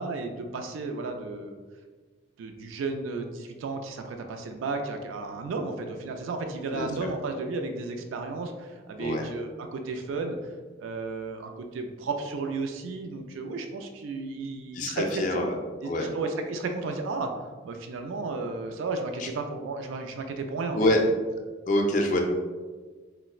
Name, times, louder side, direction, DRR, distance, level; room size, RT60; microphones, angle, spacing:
voice 1, 0.0-1.6 2.4-10.4 10.8-15.5 15.8-20.8, right 3 dB, 90° right, 5 dB, 0.3 m, -33 dB
voice 2, 6.7-7.1 9.0-9.3 14.7-15.5 15.8-16.1 19.2-19.3 20.7-21.0 21.7-22.2, left 1 dB, 40° left, 3 dB, 0.3 m, -26 dB
4.1 x 2.0 x 2.3 m, 1.4 s
head